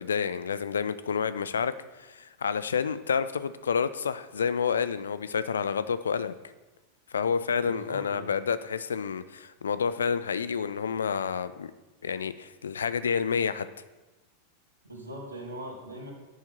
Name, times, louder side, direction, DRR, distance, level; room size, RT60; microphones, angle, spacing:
voice 1, 0.0-1.7 2.0-6.3 7.1-11.7 12.0-13.7, left 6 dB, 70° left, 14 dB, 0.6 m, -29 dB
voice 2, 7.6-8.3 14.9-16.1, equal, 85° right, -3 dB, 4.6 m, -40 dB
10.5 x 7.5 x 7.9 m, 1.2 s
figure-of-eight pair, 90°, 0 cm